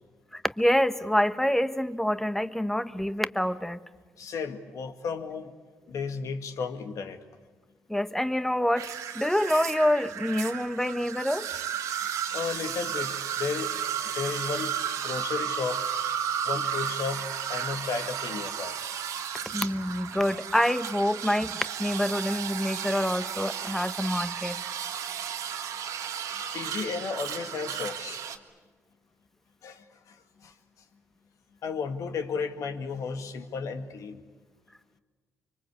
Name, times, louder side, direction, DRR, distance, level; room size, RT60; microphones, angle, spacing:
voice 1, 0.3-3.8 7.9-11.5 19.5-24.6, left 1 dB, 5° left, 13 dB, 1.2 m, -26 dB
voice 2, 4.2-5.5 5.9-7.2 12.3-13.8 14.1-14.7 15.0-15.9 16.4-18.8 26.5-28.2 29.6-30.5 31.6-34.2, left 5 dB, 75° left, 7 dB, 2.0 m, -34 dB
sound 1, 8.8-28.4, right 8 dB, 85° right, 1.6 m, -33 dB
25.0 x 24.0 x 8.4 m, 1.4 s
supercardioid pair, 60°, 6 cm